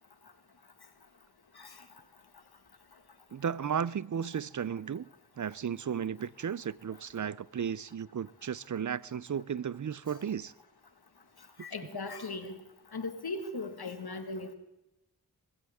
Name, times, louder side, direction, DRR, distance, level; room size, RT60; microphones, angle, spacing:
voice 1, 3.3-5.1 5.4-10.5, right 7 dB, 55° right, 0.5 m, -34 dB
voice 2, 11.6-12.6 12.9-14.5, left 3 dB, 80° left, 1.8 m, -38 dB
20.5 x 16.0 x 3.6 m
wide cardioid pair, 45°, 37 cm